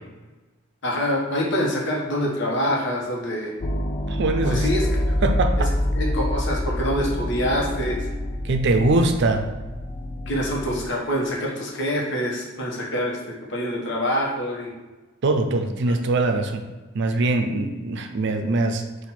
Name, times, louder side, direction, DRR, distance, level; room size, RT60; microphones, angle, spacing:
voice 1, 0.8-3.5 4.4-4.9 5.9-8.1 10.3-14.7 17.5-17.6, equal, 65° left, -2 dB, 1.1 m, -25 dB
sound 1, 3.6-10.9, left 1 dB, 25° left, 0.4 m, -26 dB
voice 2, 4.1-4.7 5.2-5.7 8.4-9.5 15.2-16.7 16.9-18.8, right 2 dB, 60° right, 6 dB, 0.5 m, -22 dB
4.3 x 2.6 x 4.2 m, 1.2 s
head